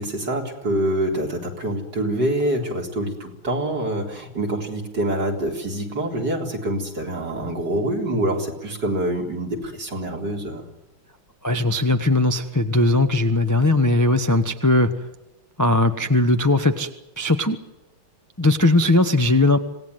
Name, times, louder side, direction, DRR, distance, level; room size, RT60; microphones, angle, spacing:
voice 1, 0.0-10.6, right 1 dB, 55° right, 1 dB, 4.5 m, -25 dB
voice 2, 11.4-14.9 15.6-17.6 18.4-19.6, left 2 dB, 10° left, 7 dB, 0.9 m, -19 dB
27.0 x 18.0 x 9.5 m, 0.97 s
omnidirectional pair, 2.3 m